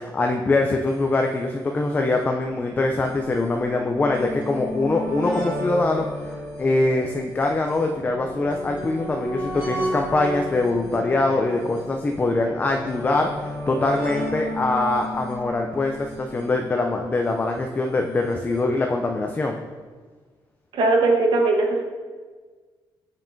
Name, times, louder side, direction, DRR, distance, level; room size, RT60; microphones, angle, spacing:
voice 1, 0.0-19.6, left 2 dB, 20° left, 3 dB, 0.3 m, -23 dB
sound 1, 0.9-1.0 1.1-1.2 2.1-17.3 18.3-18.4 18.6-18.7, equal, 20° right, 1.9 m, -34 dB
voice 2, 20.7-21.9, right 2 dB, 65° right, 1 dB, 1.0 m, -19 dB
7.2 x 5.5 x 2.6 m, 1.5 s
wide cardioid pair, 165°, 9 cm